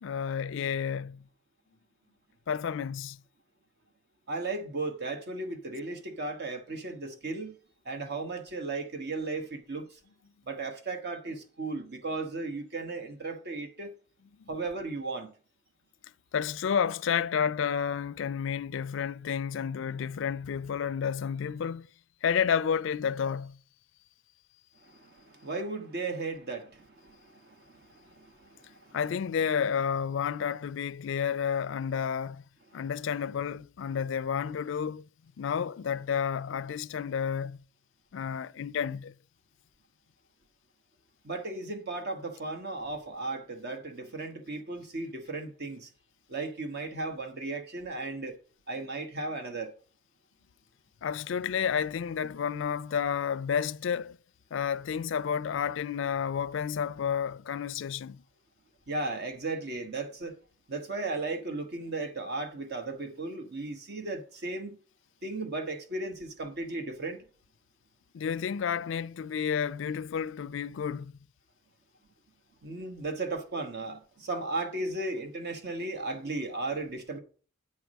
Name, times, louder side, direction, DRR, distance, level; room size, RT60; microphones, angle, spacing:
voice 1, 0.0-1.2 2.5-3.2 16.3-21.9 22.2-23.6 28.9-32.4 32.7-35.1 35.4-37.6 38.1-39.1 51.0-54.2 54.5-58.2 68.1-71.1, left 7 dB, 65° left, 0.4 m, -31 dB
voice 2, 4.3-7.6 7.8-10.0 10.5-13.9 14.5-15.3 24.8-29.0 41.2-45.9 46.3-48.4 48.7-49.7 58.9-60.4 60.7-64.8 65.2-67.2 72.6-77.2, right 3 dB, 55° right, 1.2 m, -36 dB
8.5 x 4.7 x 6.2 m
head